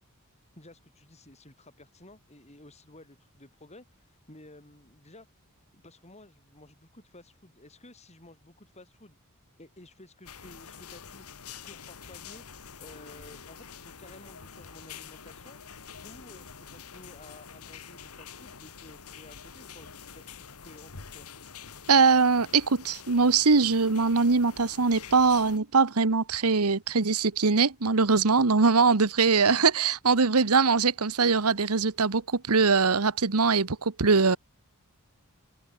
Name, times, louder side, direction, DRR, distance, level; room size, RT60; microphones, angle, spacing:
voice 1, 0.5-5.3 5.7-9.2 9.6-12.5 12.8-15.6 16.0-21.3, left 2 dB, 30° left, 7.8 m, -53 dB
sound 1, 10.2-25.6, left 6 dB, 85° left, 1.8 m, -46 dB
voice 2, 21.9-34.4, right 4 dB, 90° right, 1.2 m, -22 dB
open air
head